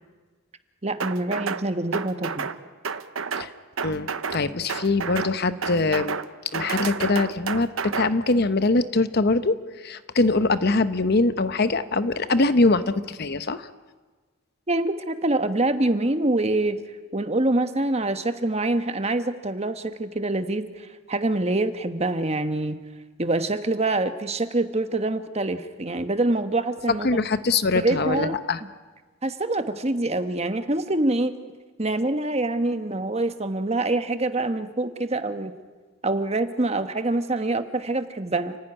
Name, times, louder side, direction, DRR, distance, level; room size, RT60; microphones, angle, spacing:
voice 1, 0.8-2.5 14.7-16.8 17.1-22.8 23.2-27.1 27.8-28.4 29.2-31.4 31.8-35.5 36.0-38.6, right 2 dB, 30° right, 9 dB, 1.3 m, -25 dB
sound 1, 1.0-1.6 1.9-2.6 2.8-3.5 3.8-4.4 4.7-5.3 5.6-6.3 6.5-8.1, right 5 dB, 80° right, 1.0 m, -30 dB
voice 2, 3.8-6.2 6.5-13.7 27.0-28.6, left 3 dB, 50° left, 12 dB, 0.9 m, -23 dB
29.5 x 15.5 x 9.9 m, 1.4 s
head